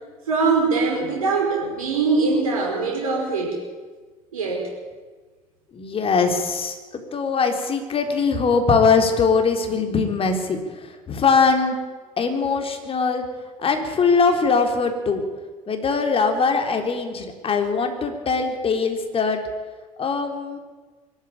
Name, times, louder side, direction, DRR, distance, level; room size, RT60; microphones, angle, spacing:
voice 1, 0.3-3.6 4.3-4.6, right 4 dB, 75° right, 0 dB, 5.3 m, -22 dB
voice 2, 5.7-11.8 12.2-13.2 13.6-15.2 15.7-19.4 20.0-20.6, left 5 dB, 30° left, 5 dB, 4.0 m, -21 dB
23.0 x 13.0 x 8.9 m, 1.3 s
figure-of-eight pair, 65°, 18 cm